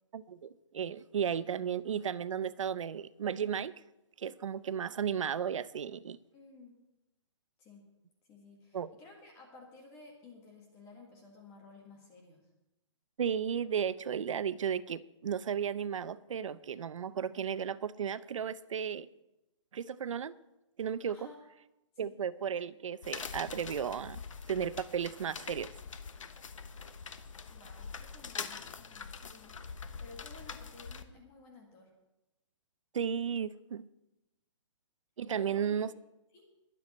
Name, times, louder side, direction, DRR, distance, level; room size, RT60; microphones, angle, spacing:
voice 1, 0.1-3.7 4.2-6.2 8.7-8.9 13.2-19.1 19.7-20.3 20.8-21.2 22.0-24.2 24.5-25.7 32.9-33.8 35.2-35.9, right 8 dB, 85° right, 0.7 m, -34 dB
voice 2, 6.3-6.8 7.6-7.8 8.3-12.4 21.1-21.4 22.0-22.1 27.5-29.5 30.0-31.9 35.3-35.8 36.3-36.4, left 3 dB, 15° left, 1.8 m, -54 dB
sound 1, 23.0-31.0, left 5 dB, 85° left, 1.2 m, -44 dB
22.0 x 7.7 x 4.3 m
hypercardioid pair, 175°, 16 cm